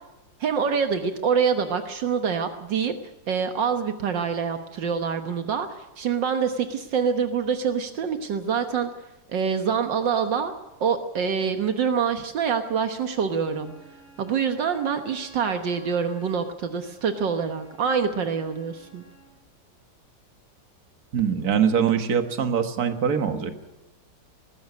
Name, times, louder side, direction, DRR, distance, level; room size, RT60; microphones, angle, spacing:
voice 1, 0.4-2.9 3.3-8.9 9.3-10.5 10.8-13.7 14.2-19.0, right 6 dB, 75° right, 7 dB, 1.9 m, -25 dB
Wind instrument woodwind instrument, 13.4-19.4, right 2 dB, ahead, 7.8 m, -53 dB
voice 2, 21.1-23.5, right 7 dB, 55° right, 7 dB, 2.0 m, -23 dB
19.5 x 15.5 x 9.6 m, 1.0 s
omnidirectional pair, 2.0 m